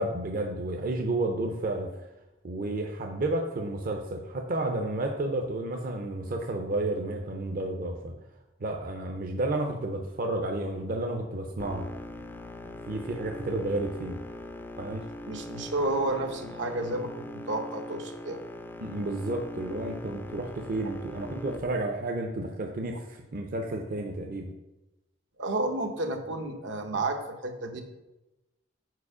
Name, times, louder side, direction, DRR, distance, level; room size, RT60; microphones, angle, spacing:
voice 1, 0.0-1.9 2.4-8.1 8.6-11.8 12.9-14.2 14.8-15.0 18.8-24.5, right 2 dB, 50° right, 3 dB, 0.5 m, -31 dB
sound 1, 11.6-21.6, left 1 dB, 10° left, 0.3 m, -41 dB
voice 2, 15.3-18.4 25.4-27.8, right 2 dB, 75° right, 5 dB, 0.8 m, -31 dB
4.9 x 4.8 x 4.8 m, 0.98 s
head